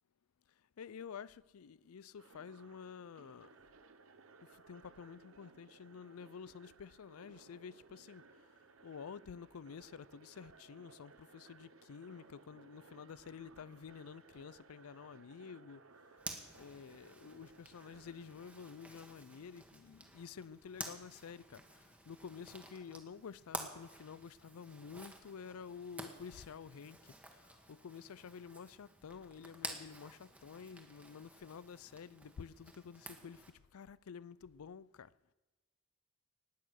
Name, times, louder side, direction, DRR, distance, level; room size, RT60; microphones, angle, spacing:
voice 1, 0.8-3.5 4.4-15.8 16.6-35.1, left 6 dB, 85° left, 0.4 m, -50 dB
sound 1, 2.2-18.8, right 4 dB, 70° right, 1.0 m, -62 dB
Zipper (clothing), 16.2-33.5, right 2 dB, 5° right, 1.3 m, -51 dB
19.0 x 8.4 x 6.5 m
head